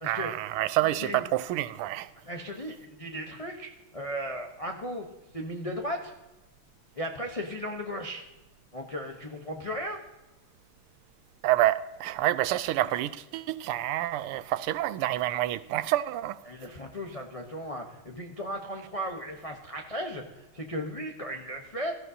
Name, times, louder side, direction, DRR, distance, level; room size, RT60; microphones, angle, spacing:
voice 1, 0.0-2.1 11.4-16.4, right 14 dB, 90° right, 1.5 m, -28 dB
voice 2, 2.2-5.1 5.3-6.1 7.0-8.2 8.7-10.0 16.5-21.9, equal, 60° left, 0.3 m, -36 dB
17.5 x 13.5 x 2.8 m
omnidirectional pair, 2.4 m